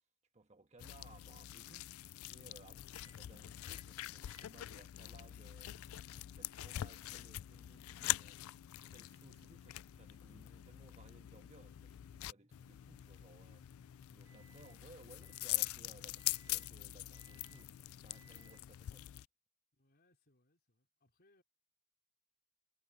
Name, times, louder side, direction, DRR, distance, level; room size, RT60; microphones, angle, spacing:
voice 1, 0.3-5.7 6.1-8.5 8.9-19.2, right 2 dB, 30° right, 1.3 m, -62 dB
sound 1, 0.8-19.2, left 15 dB, 80° left, 0.3 m, -44 dB
sound 2, 2.9-3.2 3.6-3.9 4.3-14.8 15.2-15.8 16.2-16.7 17.1-17.7 18.1-18.6, right 2 dB, 15° right, 7.2 m, -68 dB
voice 2, 19.7-21.4, left 2 dB, 50° left, 3.9 m, -73 dB
head